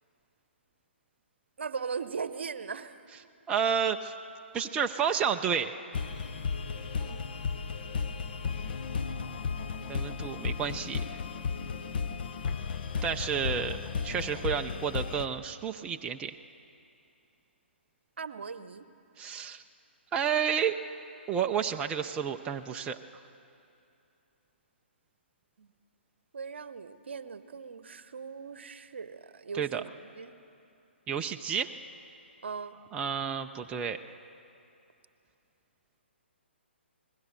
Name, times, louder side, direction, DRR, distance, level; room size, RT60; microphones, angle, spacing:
voice 1, 1.6-3.0 7.0-7.3 18.2-18.8 25.6-25.7 26.3-30.3 32.4-32.7, right 5 dB, 65° right, 13 dB, 1.0 m, -39 dB
voice 2, 3.5-4.1 4.5-5.8 9.9-11.0 13.0-13.8 14.0-16.4 19.2-19.6 20.1-20.8 21.3-23.0 29.6-29.8 31.1-31.7 32.9-34.0, right 7 dB, 15° right, 5 dB, 0.5 m, -30 dB
sound 1, 5.9-15.3, left 5 dB, 50° left, 1.2 m, -34 dB
26.5 x 20.5 x 6.7 m, 2.7 s
figure-of-eight pair, 135°, 6 cm